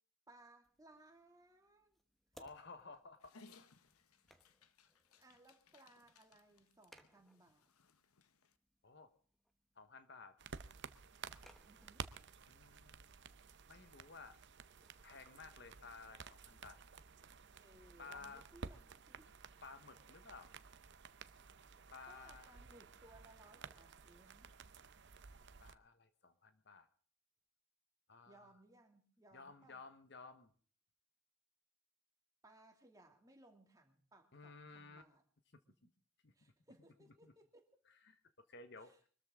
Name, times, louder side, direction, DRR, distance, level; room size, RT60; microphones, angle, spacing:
voice 1, 0.3-2.0 5.2-7.7 11.6-12.1 17.6-19.3 22.1-24.5 28.3-29.8 32.4-35.2 35.7-35.8 36.3-37.8 38.8-39.0, right 1 dB, 15° right, 3 dB, 2.5 m, -64 dB
sound 1, 0.6-18.2, equal, ahead, 1.1 m, -71 dB
voice 2, 2.3-3.7 8.8-9.1 9.8-10.4 12.5-13.1 13.7-14.4 15.0-16.8 18.0-18.4 19.6-20.5 21.9-22.5 25.6-26.9 28.1-28.5 29.3-30.5 34.3-35.0 35.8-35.9 36.2-36.3 37.2-37.3 38.0-38.2 38.5-39.1, left 4 dB, 50° left, 10 dB, 1.2 m, -55 dB
Dog, 3.2-8.6, left 4 dB, 85° left, 1.0 m, -66 dB
sound 2, 10.4-25.7, right 5 dB, 55° right, 0.7 m, -54 dB
24.0 x 13.5 x 3.7 m, 0.44 s
head